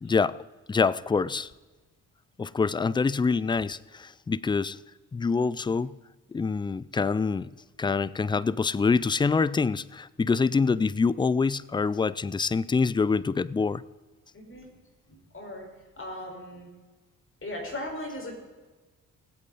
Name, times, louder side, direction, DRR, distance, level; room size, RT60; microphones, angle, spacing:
voice 1, 0.0-0.4 0.7-1.5 2.4-4.8 5.1-6.0 6.3-7.5 7.8-13.8, left 4 dB, 15° left, 21 dB, 0.4 m, -25 dB
voice 2, 14.3-14.7 15.1-15.7 16.0-16.7 17.4-18.3, left 1 dB, 35° left, 0 dB, 4.9 m, -38 dB
18.5 x 8.4 x 4.1 m, 1.3 s
supercardioid pair, 55°, 37 cm